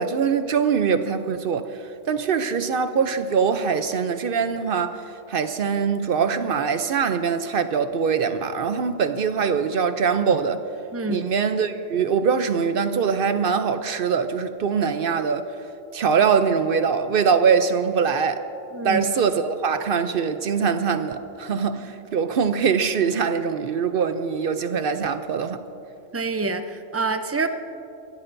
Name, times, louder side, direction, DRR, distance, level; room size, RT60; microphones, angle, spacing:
voice 1, 0.0-1.7 2.1-5.0 5.3-10.6 11.1-15.5 15.9-18.4 18.8-25.6, right 6 dB, 60° right, 0.7 m, -23 dB
voice 2, 10.9-11.3 18.7-19.0 26.1-27.5, right 3 dB, 20° right, 0.4 m, -26 dB
25.0 x 13.0 x 2.6 m
omnidirectional pair, 1.2 m